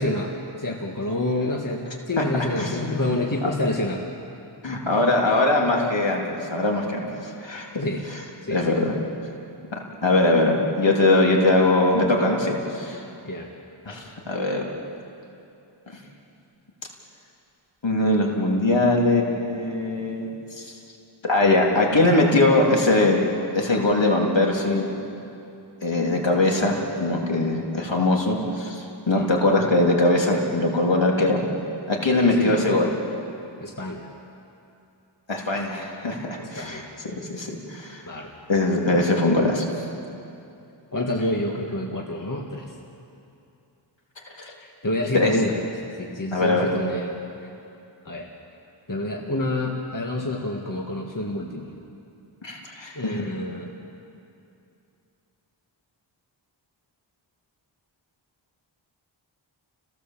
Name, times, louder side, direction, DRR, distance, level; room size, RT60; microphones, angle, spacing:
voice 1, 0.0-4.0 7.8-8.1 8.4-8.8 13.2-13.5 29.1-29.3 31.2-31.3 32.2-32.7 33.6-34.1 36.4-36.9 38.1-38.3 40.9-42.8 44.6-45.6 46.0-47.2 47.4-47.5 48.0-48.3 48.9-51.8 52.9-53.7, left 1 dB, 40° left, 0 dB, 2.0 m, -28 dB
voice 2, 2.6-3.1 3.4-3.5 4.6-7.7 8.5-8.9 10.0-13.0 13.9-14.6 17.8-20.3 20.6-20.7 21.2-23.2 23.5-24.9 25.8-31.4 31.9-32.9 35.3-36.2 36.5-38.0 38.5-39.7 44.4-44.5 45.1-45.3 46.3-46.7 52.4-53.2, left 2 dB, 70° left, -1 dB, 3.5 m, -21 dB
30.0 x 17.5 x 7.6 m, 2.7 s
wide cardioid pair, 55°, 47 cm